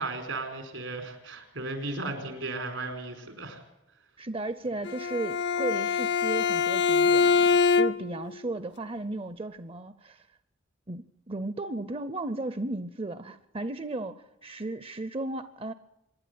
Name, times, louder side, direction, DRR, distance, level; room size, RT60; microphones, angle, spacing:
voice 1, 0.0-3.6, right 2 dB, 85° right, 6 dB, 4.5 m, -35 dB
voice 2, 4.2-10.3 10.9-15.7, right 2 dB, 30° right, 13 dB, 0.6 m, -35 dB
Bowed string instrument, 4.8-8.2, left 5 dB, 60° left, 0.6 m, -24 dB
25.5 x 11.0 x 9.4 m, 0.91 s
head